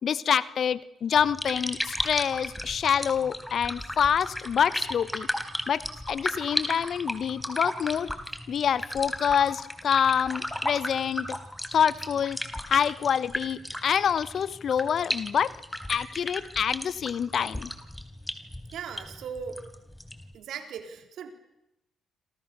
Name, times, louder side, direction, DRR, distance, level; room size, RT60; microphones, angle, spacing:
voice 1, 0.0-5.3 5.7-8.1 8.5-11.4 11.7-12.4 12.6-15.5 15.9-17.7, left 8 dB, 60° left, 17 dB, 1.1 m, -26 dB
sound 1, 1.2-20.3, left 1 dB, 5° left, 4.0 m, -35 dB
voice 2, 18.7-19.7 20.3-21.3, right 7 dB, 70° right, 6 dB, 3.9 m, -38 dB
27.5 x 27.5 x 6.9 m, 0.90 s
hypercardioid pair, 50°, 0 cm